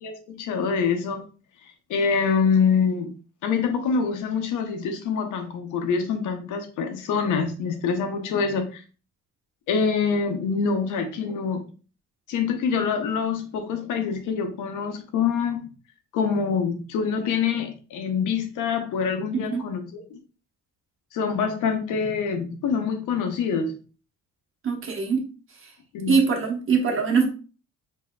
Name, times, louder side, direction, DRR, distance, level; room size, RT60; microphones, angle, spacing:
voice 1, 0.0-1.3 1.9-3.1 3.4-8.8 9.7-11.6 12.3-15.7 16.1-20.2 21.1-23.8 25.9-26.2, left 6 dB, 85° left, 0.8 m, -25 dB
voice 2, 19.3-19.6 24.6-25.2 25.6-25.7 26.1-27.2, right 5 dB, 45° right, 1.1 m, -22 dB
4.6 x 2.8 x 2.2 m
cardioid pair, 90°, 30 cm